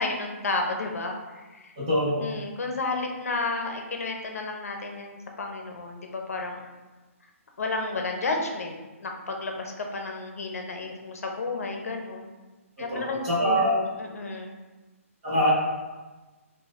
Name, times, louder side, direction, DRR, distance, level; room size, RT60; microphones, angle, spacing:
voice 1, 0.0-1.7 2.1-6.6 7.6-12.3 12.8-14.6, left 3 dB, 80° left, 2 dB, 0.6 m, -32 dB
voice 2, 1.8-2.2 12.9-13.7 15.2-15.5, equal, 25° right, -9 dB, 1.1 m, -24 dB
4.1 x 2.6 x 2.4 m, 1.2 s
hypercardioid pair, 175°, 8 cm